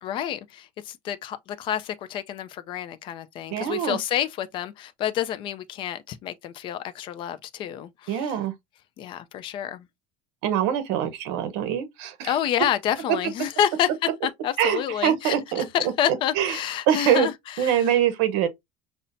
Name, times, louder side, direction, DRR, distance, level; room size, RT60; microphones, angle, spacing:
voice 1, 0.0-8.3 9.0-9.9 12.2-17.9, left 10 dB, 35° left, 0.3 m, -29 dB
voice 2, 3.5-4.0 8.1-8.5 10.4-12.3 14.6-16.6 16.9-17.3 17.6-18.5, right 10 dB, 70° right, 0.8 m, -24 dB
5.5 x 2.0 x 2.5 m
cardioid pair, 165°, 15 cm